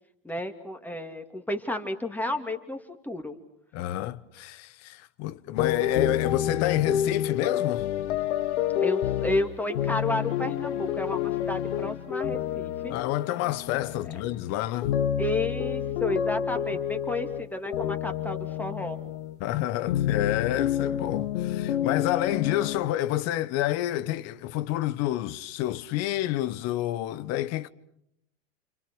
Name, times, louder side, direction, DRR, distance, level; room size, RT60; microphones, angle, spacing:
voice 1, 0.2-3.4 8.8-13.0 15.2-19.0, left 1 dB, 5° left, 2.6 m, -32 dB
voice 2, 3.7-7.9 12.9-15.0 19.4-27.7, left 14 dB, 50° left, 1.1 m, -29 dB
sound 1, 5.6-14.5 14.8-19.4 19.9-22.9, left 10 dB, 80° left, 1.6 m, -29 dB
29.5 x 27.0 x 6.2 m
hypercardioid pair, 115°, 33 cm